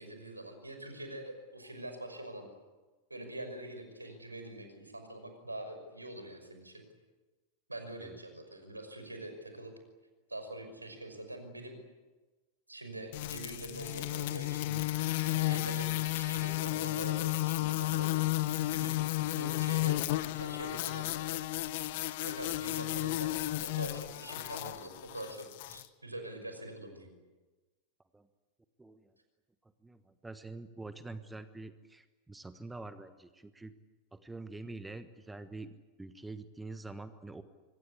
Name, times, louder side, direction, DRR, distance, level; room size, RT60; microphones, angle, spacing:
voice 1, 0.0-2.5 3.1-6.8 7.7-9.7 10.3-11.7 12.7-14.6 15.3-18.2 18.7-19.0 19.3-21.4 22.2-27.1, right 1 dB, 85° right, 6 dB, 5.8 m, -44 dB
sound 1, 13.1-25.9, left 17 dB, 50° left, 1.0 m, -33 dB
voice 2, 28.8-29.2 29.6-33.7 34.1-35.7 36.0-37.4, right 2 dB, 10° right, 12 dB, 1.3 m, -46 dB
25.5 x 24.5 x 8.5 m, 1.2 s
figure-of-eight pair, 90°, 0 cm